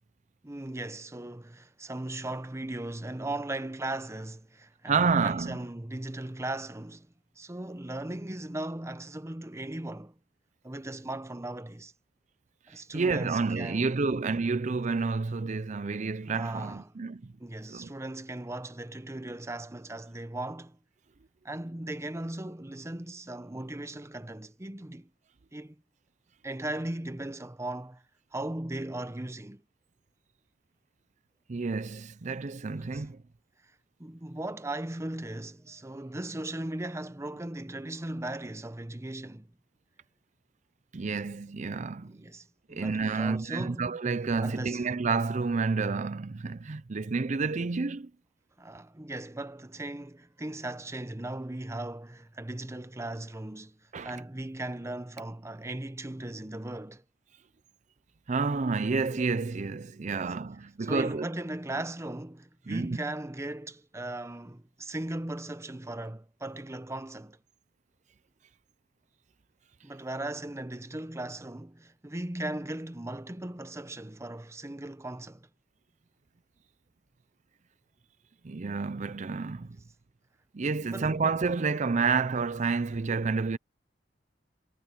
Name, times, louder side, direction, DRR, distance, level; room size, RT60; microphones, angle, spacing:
voice 1, 0.4-7.1 7.4-10.1 10.6-11.9 12.7-13.9 16.3-16.9 17.4-20.8 21.4-25.1 25.5-25.8 26.4-28.0 28.3-29.6 32.7-33.1 34.0-39.5 42.0-43.9 44.4-44.9 48.6-57.0 60.1-60.3 60.8-67.4 69.8-75.5 80.9-81.2, right 1 dB, 15° right, 0.8 m, -38 dB
voice 2, 4.9-5.6 12.9-17.3 17.7-17.9 31.5-33.2 40.9-42.2 42.7-48.1 53.9-54.1 58.3-61.3 62.7-63.0 78.4-79.8 80.5-83.6, right 4 dB, 40° right, 0.5 m, -29 dB
head